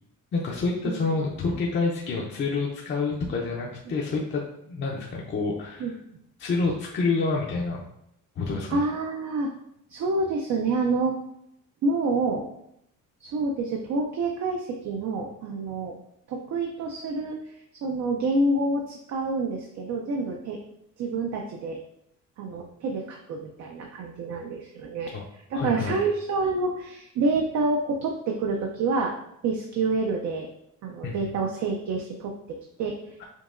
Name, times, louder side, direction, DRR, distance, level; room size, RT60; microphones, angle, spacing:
voice 1, 0.3-5.9 6.4-7.8 8.4-8.8 25.1-25.2 25.5-26.0 31.0-31.2, left 4 dB, 35° left, -2 dB, 0.5 m, -28 dB
voice 2, 8.7-9.5 9.9-11.2 11.8-12.5 13.2-16.0 16.3-17.5 17.8-20.6 21.0-21.8 22.4-29.1 29.4-30.5 30.8-33.2, right 3 dB, 60° right, 1 dB, 0.5 m, -28 dB
5.3 x 2.8 x 2.5 m, 0.76 s
cardioid pair, 160°, 31 cm